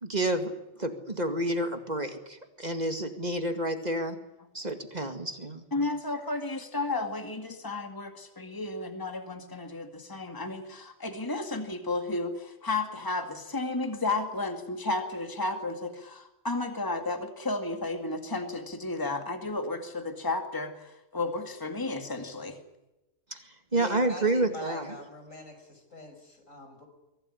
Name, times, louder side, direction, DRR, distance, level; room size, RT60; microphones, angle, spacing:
voice 1, 0.0-0.5 0.8-4.2 4.5-5.6 23.3-24.9, right 1 dB, 35° right, 7 dB, 2.2 m, -29 dB
voice 2, 5.7-22.6, left 2 dB, 15° left, 6 dB, 2.1 m, -33 dB
voice 3, 23.7-26.9, left 1 dB, 80° left, 5 dB, 6.3 m, -43 dB
23.5 x 17.0 x 9.9 m, 0.96 s
omnidirectional pair, 1.3 m